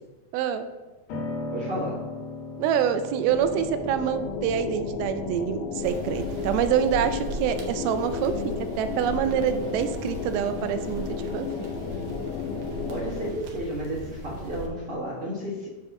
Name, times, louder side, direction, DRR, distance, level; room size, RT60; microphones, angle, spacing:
voice 1, 0.3-0.7 2.6-11.5, right 9 dB, 85° right, 9 dB, 2.5 m, -26 dB
Piano, 1.1-11.0, left 2 dB, 65° left, 1.7 m, -40 dB
voice 2, 1.5-2.1 12.9-15.7, equal, 50° right, -9 dB, 1.9 m, -32 dB
sound 1, 3.3-13.4, left 6 dB, 80° left, 2.1 m, -33 dB
sound 2, 5.8-14.7, right 2 dB, 70° right, 2.0 m, -38 dB
7.5 x 3.0 x 6.1 m, 1.2 s
omnidirectional pair, 4.3 m